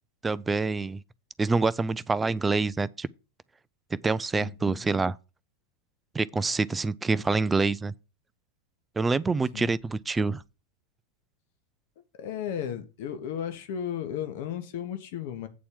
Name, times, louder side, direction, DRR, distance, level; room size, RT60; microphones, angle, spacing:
voice 1, 0.2-1.0 1.4-3.1 3.9-5.2 6.1-7.9 9.0-10.4, right 3 dB, 10° right, 0.4 m, -26 dB
voice 2, 4.3-4.8 9.5-9.7 12.1-15.5, left 9 dB, 50° left, 1.2 m, -34 dB
8.5 x 4.2 x 7.1 m
figure-of-eight pair, 90°, 0 cm